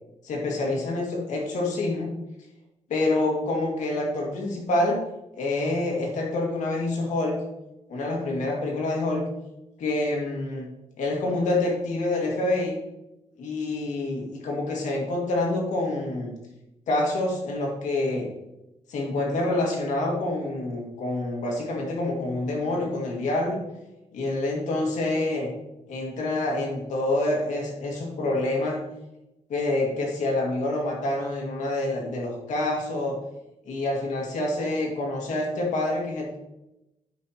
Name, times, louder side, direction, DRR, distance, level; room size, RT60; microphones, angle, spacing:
voice 1, 0.2-2.1 2.9-5.1 5.3-7.4 7.9-9.2 9.8-10.7 11.0-12.8 13.4-16.3 16.9-18.3 18.9-23.6 24.1-25.5 25.9-28.8 29.5-33.2 33.7-36.4, left 2 dB, 80° left, -1 dB, 2.0 m, -27 dB
10.5 x 5.3 x 2.9 m, 0.94 s
cardioid pair, 120°, 12 cm